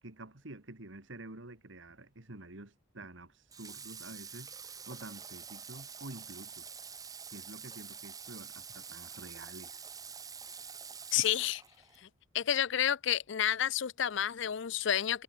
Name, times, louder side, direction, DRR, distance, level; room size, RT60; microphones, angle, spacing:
voice 1, 0.0-6.7 7.3-9.8, right 2 dB, 65° right, 2.3 m, -49 dB
Water / Water tap faucet, 3.5-12.0, right 6 dB, 15° right, 1.0 m, -47 dB
voice 2, 11.1-11.6 12.0-12.1 12.3-15.2, left 10 dB, 60° left, 0.5 m, -30 dB
head